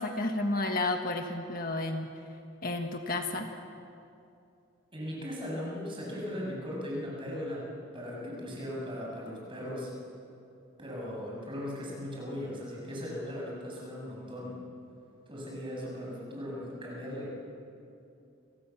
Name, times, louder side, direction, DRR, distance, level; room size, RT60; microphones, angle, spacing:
voice 1, 0.0-2.1 2.6-3.5, left 2 dB, 45° left, 4 dB, 1.6 m, -31 dB
voice 2, 4.9-7.7 7.9-9.9 10.8-14.6 15.3-17.4, equal, 25° right, -3 dB, 7.7 m, -38 dB
29.5 x 25.5 x 7.3 m, 2.6 s
head